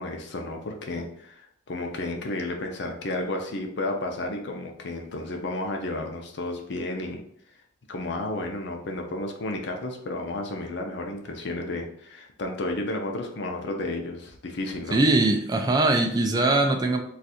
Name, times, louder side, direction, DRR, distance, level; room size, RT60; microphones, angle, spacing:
voice 1, 0.0-7.2 7.9-15.0, left 2 dB, 60° left, 3 dB, 0.6 m, -32 dB
voice 2, 14.9-17.0, right 2 dB, 20° right, 3 dB, 0.3 m, -21 dB
2.5 x 2.4 x 4.1 m, 0.68 s
head